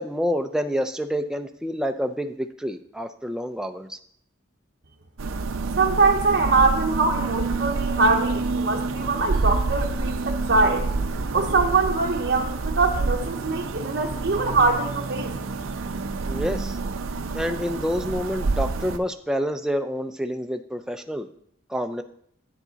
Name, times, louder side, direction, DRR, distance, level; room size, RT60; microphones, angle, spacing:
voice 1, 0.0-4.0 16.3-16.8 17.3-21.3 21.7-22.0, equal, 5° right, 6 dB, 0.4 m, -28 dB
sound 1, 5.2-19.0, right 3 dB, 85° right, 0.6 m, -28 dB
voice 2, 5.8-10.9 11.3-15.4, right 3 dB, 55° right, -1 dB, 0.7 m, -23 dB
9.8 x 7.3 x 4.0 m, 0.67 s
head